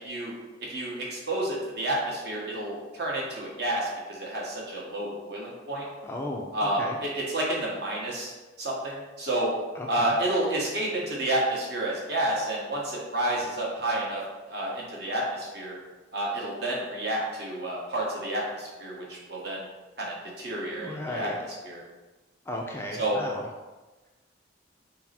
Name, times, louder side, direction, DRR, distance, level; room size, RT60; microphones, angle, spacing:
voice 1, 0.7-5.9 6.5-9.5 9.9-14.2 14.5-15.8 16.1-19.7 20.0-21.3 21.6-21.8 23.0-23.2, right 1 dB, 55° right, -4 dB, 1.2 m, -30 dB
voice 2, 6.0-6.5 6.8-7.0 9.8-10.1 20.8-21.4 22.5-23.5, left 1 dB, 15° left, 0 dB, 0.4 m, -35 dB
5.8 x 2.0 x 4.2 m, 1.2 s
head